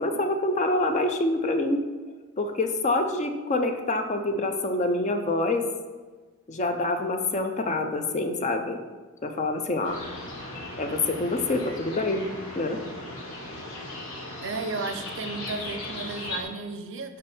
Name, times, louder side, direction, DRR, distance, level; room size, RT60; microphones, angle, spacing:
voice 1, 0.0-1.8 2.4-5.7 6.5-8.8 9.2-10.0 10.8-12.2 12.5-12.8, left 2 dB, 30° left, 6 dB, 0.5 m, -26 dB
sound 1, 9.8-16.4, left 2 dB, 65° left, 1.3 m, -37 dB
voice 2, 14.4-17.2, right 3 dB, 60° right, 8 dB, 0.5 m, -34 dB
5.3 x 5.2 x 4.2 m, 1.3 s
head